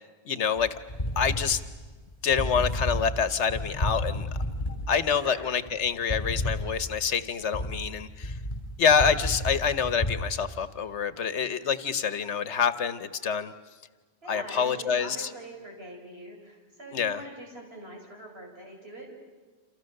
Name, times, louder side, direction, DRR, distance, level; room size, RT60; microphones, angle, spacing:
voice 1, 0.2-0.7 1.2-1.6 2.2-4.3 4.9-8.3 8.8-13.5 14.3-15.3 16.9-17.2, left 7 dB, 80° left, 12 dB, 1.3 m, -26 dB
sound 1, 0.6-10.2, left 1 dB, 30° left, 7.7 m, -32 dB
voice 2, 5.1-5.6 14.2-19.1, right 1 dB, 60° right, 0 dB, 6.1 m, -43 dB
29.0 x 27.5 x 6.6 m, 1.3 s
omnidirectional pair, 1.2 m